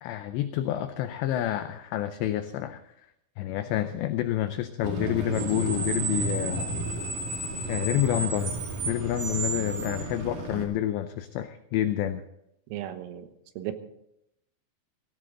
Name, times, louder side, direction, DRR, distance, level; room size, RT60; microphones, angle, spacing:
voice 1, 0.0-2.8 3.4-6.6 7.7-8.6 8.9-12.2, left 12 dB, 90° left, 9 dB, 2.5 m, -28 dB
Screech, 4.8-10.6, right 2 dB, 50° right, 2.7 m, -31 dB
voice 2, 12.7-13.3 13.6-13.7, right 12 dB, 85° right, 9 dB, 3.8 m, -35 dB
17.5 x 16.0 x 3.8 m, 0.78 s
omnidirectional pair, 5.9 m